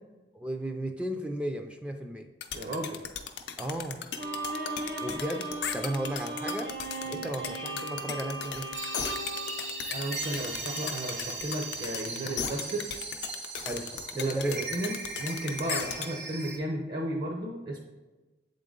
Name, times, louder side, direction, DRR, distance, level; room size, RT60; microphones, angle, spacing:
voice 1, 0.3-2.3 3.6-4.1 5.0-6.8 7.1-8.7 13.6-14.7, right 1 dB, 5° right, 4 dB, 0.4 m, -34 dB
sound 1, 2.4-16.1, left 8 dB, 70° left, 0.5 m, -36 dB
voice 2, 2.5-3.0 7.0-7.2 9.9-12.9 14.2-17.8, right 1 dB, 60° right, 0 dB, 0.8 m, -34 dB
Bowed string instrument, 4.1-10.4, right 2 dB, 90° right, 1.2 m, -37 dB
sound 2, 8.7-16.6, right 3 dB, 75° right, 1.6 m, -38 dB
8.0 x 3.8 x 3.7 m, 1.2 s
head